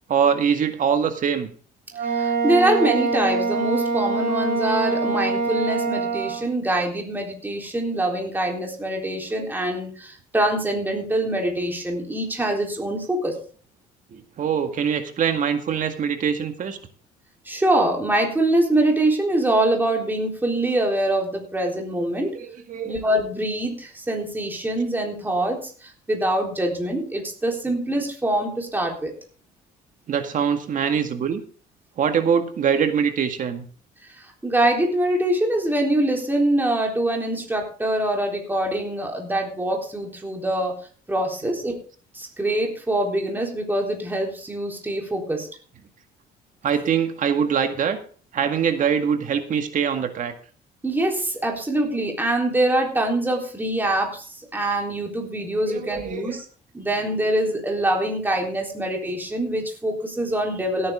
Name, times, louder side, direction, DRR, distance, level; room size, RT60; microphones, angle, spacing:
voice 1, 0.1-1.5 14.1-16.8 22.3-23.0 30.1-31.4 32.0-33.6 46.6-48.0 48.3-50.3 55.6-56.4, right 7 dB, 50° right, 7 dB, 2.0 m, -23 dB
Wind instrument woodwind instrument, 1.9-6.5, right 3 dB, 65° right, 3.1 m, -24 dB
voice 2, 2.0-13.4 17.5-22.3 22.8-29.1 34.2-40.8 41.1-41.8 42.1-45.5 50.8-56.4 56.7-60.9, right 1 dB, 10° right, 1 dB, 3.7 m, -24 dB
17.0 x 9.6 x 3.7 m, 0.42 s
cardioid pair, 110°, 17 cm